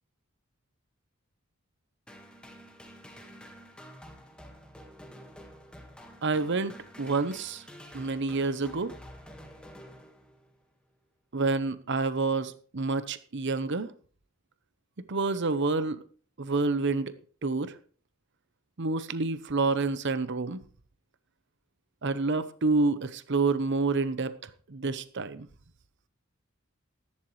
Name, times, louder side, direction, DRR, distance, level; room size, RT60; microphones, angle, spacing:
sound 1, 2.1-10.6, equal, 5° left, 1.6 m, -49 dB
voice 1, 6.2-7.6 7.9-8.9 11.3-13.9 15.1-16.0 16.4-17.1 17.4-17.7 18.8-20.6 22.0-25.5, right 3 dB, 55° right, 0.8 m, -28 dB
14.5 x 12.0 x 3.2 m
head